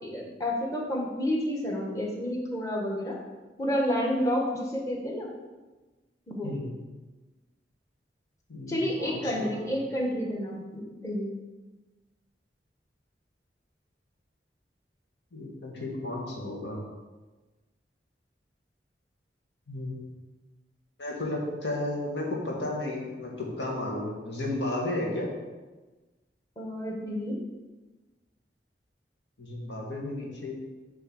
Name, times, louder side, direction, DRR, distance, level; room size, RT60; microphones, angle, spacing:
voice 1, 0.0-3.2 3.6-5.3 6.3-6.5 8.7-11.3 26.6-27.4, equal, 20° left, -1 dB, 1.2 m, -30 dB
voice 2, 8.5-9.7 15.3-16.8 19.7-20.1 21.0-25.3 29.4-30.5, left 1 dB, 90° left, -2 dB, 1.8 m, -33 dB
6.9 x 3.5 x 6.2 m, 1.2 s
head